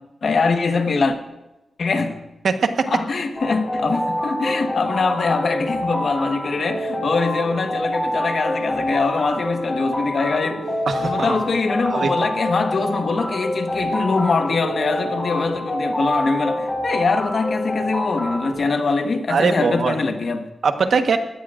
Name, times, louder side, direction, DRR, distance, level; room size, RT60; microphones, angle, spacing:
voice 1, 0.2-1.2 1.8-2.2 2.9-10.6 11.0-20.5, left 4 dB, 60° left, 1.3 m, -22 dB
voice 2, 2.4-2.9 10.9-11.4 11.9-12.1 19.3-19.9 20.6-21.2, right 5 dB, 70° right, 1.2 m, -21 dB
sound 1, 3.3-18.5, equal, 20° left, 4.6 m, -26 dB
22.0 x 16.5 x 2.5 m
wide cardioid pair, 120°, 0 cm